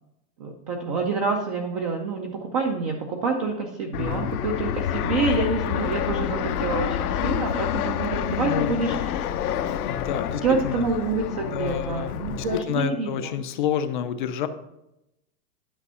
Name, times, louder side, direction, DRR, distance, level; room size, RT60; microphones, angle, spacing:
voice 1, 0.4-9.2 10.4-13.3, right 4 dB, 25° right, 2 dB, 0.5 m, -27 dB
Fixed-wing aircraft airplane, 3.9-12.6, left 10 dB, 70° left, 0.9 m, -28 dB
voice 2, 4.0-4.3 8.3-8.7 9.8-10.9 11.3-14.5, left 8 dB, 35° left, 10 dB, 0.5 m, -29 dB
11.0 x 5.2 x 5.5 m, 0.87 s
supercardioid pair, 165°, 47 cm